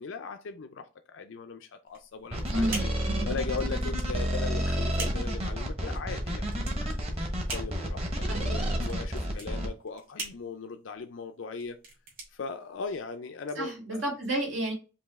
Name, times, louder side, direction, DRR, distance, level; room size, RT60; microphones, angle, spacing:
voice 1, 0.0-2.9 3.3-6.7 7.5-11.8 12.3-14.0, left 4 dB, 75° left, 0.5 m, -39 dB
sound 1, 1.9-13.2, right 3 dB, 45° right, 1.9 m, -44 dB
sound 2, 2.3-9.7, equal, 30° right, 1.2 m, -30 dB
voice 2, 2.5-3.3 8.3-8.4 8.9-9.0 13.6-14.7, right 1 dB, 85° right, 2.5 m, -31 dB
5.2 x 2.7 x 3.5 m
head